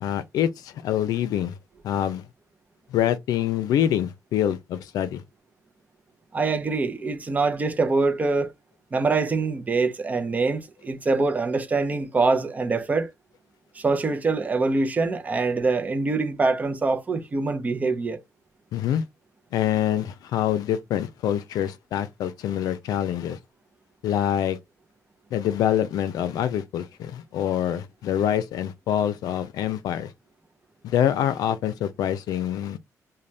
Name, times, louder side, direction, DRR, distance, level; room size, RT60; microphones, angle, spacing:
voice 1, 0.0-1.6 1.8-2.2 2.9-5.2 18.7-19.0 19.5-23.4 24.0-24.6 25.3-30.1 30.8-32.8, left 10 dB, 85° left, 0.5 m, -25 dB
voice 2, 6.3-8.5 8.9-13.1 13.7-18.2, right 3 dB, 25° right, 0.5 m, -24 dB
3.3 x 2.2 x 2.6 m
cardioid pair, 140°, 6 cm